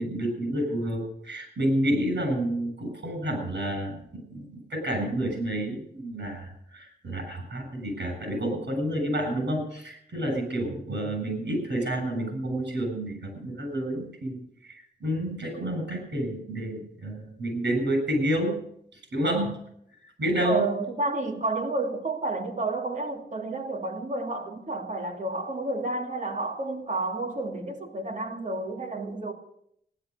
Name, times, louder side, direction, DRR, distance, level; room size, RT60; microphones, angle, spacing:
voice 1, 0.0-18.6 19.1-19.6 20.0-20.7, right 1 dB, 75° right, 7.6 m, -29 dB
voice 2, 20.4-29.3, right 2 dB, 45° right, 2.7 m, -30 dB
15.5 x 12.0 x 6.7 m
wide cardioid pair, 120°, 18 cm